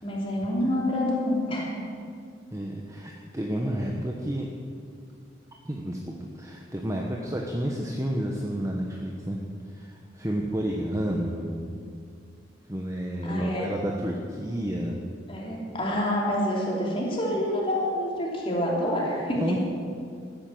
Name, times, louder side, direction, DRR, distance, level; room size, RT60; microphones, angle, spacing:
voice 1, 0.0-1.8 13.2-13.7 15.3-19.4, left 1 dB, 30° left, -3 dB, 3.2 m, -27 dB
voice 2, 2.5-4.5 5.6-6.0 6.4-9.4 9.7-11.7 12.7-15.0 19.4-19.6, equal, 15° right, 0 dB, 1.0 m, -30 dB
14.0 x 10.0 x 7.8 m, 2.3 s
head